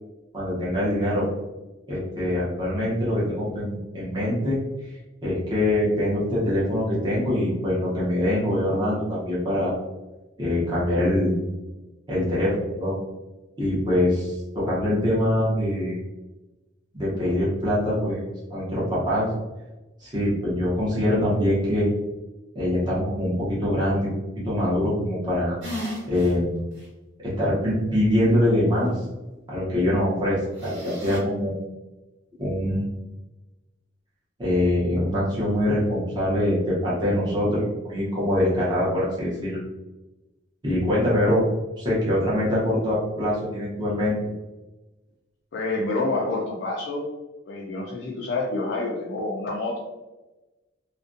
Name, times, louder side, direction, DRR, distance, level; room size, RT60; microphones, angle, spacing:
voice 1, 0.3-1.3 1.9-4.6 5.2-9.7 10.4-11.4 12.1-12.9 13.6-16.0 16.9-18.2 18.5-19.3 20.0-21.9 22.5-24.2 24.4-25.6 26.1-26.6 27.2-29.0 29.5-31.5 32.4-33.0 34.4-39.6 40.6-41.4 41.8-44.2, left 1 dB, 25° right, -8 dB, 0.8 m, -24 dB
sound 1, 25.6-26.3 26.8-26.9 30.6-31.2, left 1 dB, 85° right, 1.3 m, -34 dB
voice 2, 45.5-47.0 47.5-49.8, left 2 dB, 65° left, -3 dB, 0.4 m, -28 dB
2.4 x 2.2 x 2.5 m, 1.1 s
head